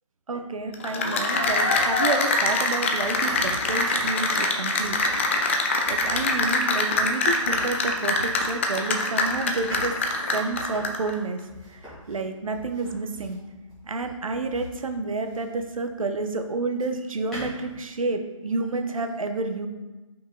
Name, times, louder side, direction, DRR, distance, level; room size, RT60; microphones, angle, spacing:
voice 1, 0.3-5.0 5.9-10.0 10.3-11.4 11.7-13.4 13.8-19.7, right 3 dB, 80° right, 7 dB, 0.8 m, -30 dB
Cheering / Applause, 0.7-11.1, left 2 dB, 20° left, 0.4 m, -24 dB
sound 1, 1.4-5.6 5.8-15.8 16.7-17.9, equal, 5° left, 1.8 m, -41 dB
5.6 x 4.5 x 3.7 m, 1.2 s
figure-of-eight pair, 155°, 17 cm